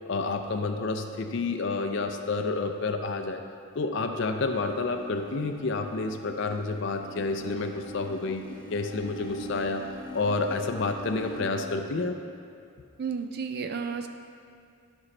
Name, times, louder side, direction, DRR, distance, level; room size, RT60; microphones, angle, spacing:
voice 1, 0.1-3.4 3.8-8.4 8.7-9.8 10.1-12.2, left 3 dB, 55° left, 5 dB, 0.5 m, -29 dB
sound 1, 4.4-11.4, equal, 20° left, 0.9 m, -43 dB
voice 2, 13.0-14.1, right 5 dB, 45° right, 7 dB, 0.3 m, -32 dB
12.5 x 5.3 x 3.2 m, 2.5 s
head